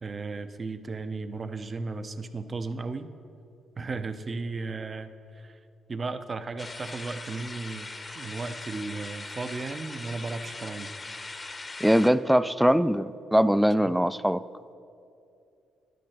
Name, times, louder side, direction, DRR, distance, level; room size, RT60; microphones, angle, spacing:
voice 1, 0.0-3.1 3.8-5.6 5.9-10.9 13.8-13.9, right 3 dB, 35° right, 10 dB, 0.7 m, -35 dB
sound 1, 6.6-12.1, left 3 dB, 25° left, 0.8 m, -40 dB
voice 2, 11.8-14.4, equal, 5° right, 16 dB, 0.3 m, -22 dB
11.0 x 9.3 x 5.9 m, 2.6 s
cardioid pair, 90°, 0 cm